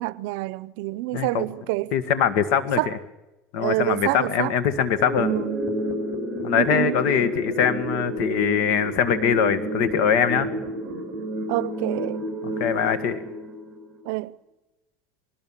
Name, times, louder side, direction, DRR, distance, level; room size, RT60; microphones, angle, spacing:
voice 1, 0.0-1.9 2.8-3.0 3.6-4.5 5.2-5.6 6.5-7.0 11.5-12.2 14.0-14.4, right 20 dB, 80° right, 0.6 m, -27 dB
voice 2, 1.1-1.4 1.9-2.9 3.5-5.3 6.4-10.5 12.4-13.2, left 8 dB, 75° left, 1.8 m, -22 dB
sound 1, 5.0-14.0, equal, 15° right, 7.8 m, -30 dB
21.5 x 19.0 x 7.4 m
cardioid pair, 140°, 0 cm